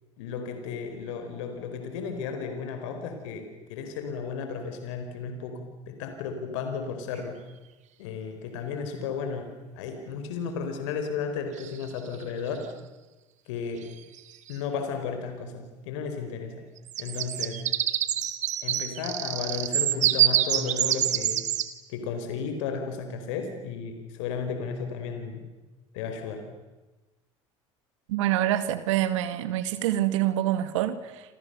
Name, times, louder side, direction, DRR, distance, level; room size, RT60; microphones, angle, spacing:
voice 1, 0.2-7.4 8.0-9.5 9.7-12.6 13.5-13.9 14.5-16.6 17.0-17.6 18.6-21.4 21.9-25.5 25.9-26.4, left 5 dB, 70° left, 4.6 m, -34 dB
sound 1, 7.2-7.3 11.6-12.1 13.8-13.9 14.2-14.5 16.8-21.7, right 12 dB, 50° right, 2.3 m, -26 dB
voice 2, 28.1-31.2, right 13 dB, 75° right, 2.2 m, -26 dB
29.0 x 27.5 x 6.9 m
hypercardioid pair, 70°, 16 cm